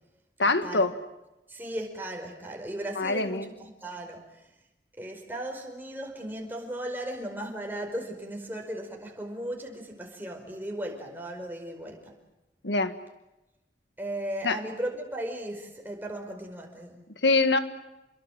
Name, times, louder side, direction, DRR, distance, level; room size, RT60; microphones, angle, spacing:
voice 1, 0.4-0.9 3.0-3.5 12.6-12.9 14.4-14.6 17.2-17.6, left 3 dB, 80° left, 10 dB, 1.9 m, -24 dB
voice 2, 1.5-4.5 5.0-12.1 14.0-17.1, right 1 dB, 10° right, 2 dB, 4.9 m, -36 dB
28.5 x 22.5 x 7.5 m, 0.99 s
head